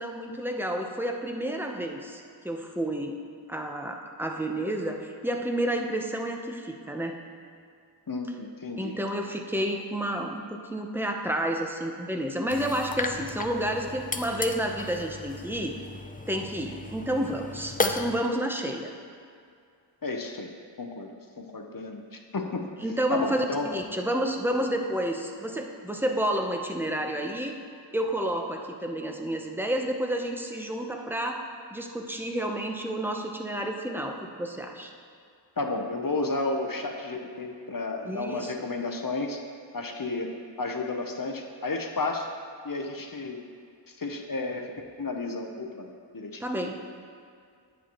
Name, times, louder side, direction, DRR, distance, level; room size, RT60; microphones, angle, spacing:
voice 1, 0.0-3.1 3.5-7.1 8.8-15.7 16.3-18.9 22.8-27.6 27.9-31.4 31.7-34.9 38.1-38.5 46.4-46.8, right 1 dB, 5° right, 2 dB, 0.7 m, -30 dB
voice 2, 8.1-9.0 20.0-20.5 20.8-22.7 23.1-23.7 35.6-39.4 39.7-40.3 40.6-42.3 42.6-43.4 43.9-44.7 45.0-45.9 46.1-46.4, left 3 dB, 50° left, 3 dB, 0.8 m, -32 dB
sound 1, 12.5-18.2, left 3 dB, 20° left, 0.4 m, -34 dB
10.0 x 8.4 x 3.0 m, 2.3 s
wide cardioid pair, 45°, 44 cm